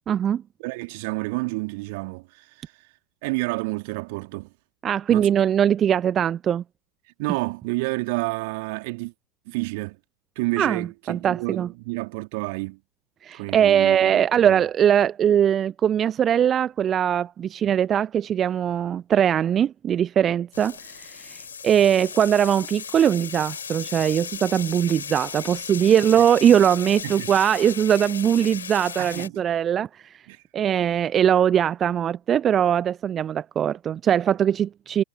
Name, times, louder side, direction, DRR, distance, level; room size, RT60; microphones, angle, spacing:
voice 1, 0.1-0.4 4.8-6.6 10.6-11.7 13.2-30.3 30.5-35.0, right 9 dB, 25° right, 0.9 m, -21 dB
voice 2, 0.6-2.7 3.2-4.5 5.1-5.3 7.2-9.1 9.5-10.0 10.4-12.8 13.3-14.6 26.1-26.2 27.0-27.3 29.0-29.3 30.3-30.4, right 26 dB, 50° right, 2.5 m, -29 dB
sound 1, 20.5-29.3, left 7 dB, 70° left, 2.8 m, -36 dB
figure-of-eight pair, 90°, 0 cm